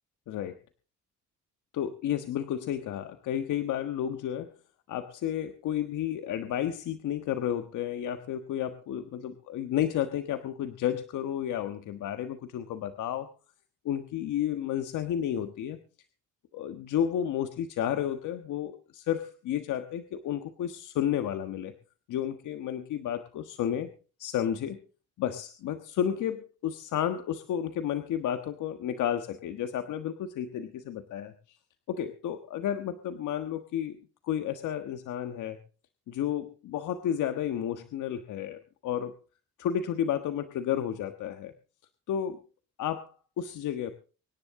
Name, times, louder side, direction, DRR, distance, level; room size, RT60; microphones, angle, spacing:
voice 1, 1.7-4.6 4.9-13.3 13.8-15.8 16.5-21.7 22.1-23.9 24.2-24.8 25.2-31.6 31.9-34.0 34.2-35.6 36.1-39.1 39.6-41.5 42.1-42.4 42.8-43.9, left 10 dB, 80° left, 8 dB, 1.4 m, -32 dB
25.0 x 10.5 x 3.7 m, 0.36 s
cardioid pair, 90°, 30 cm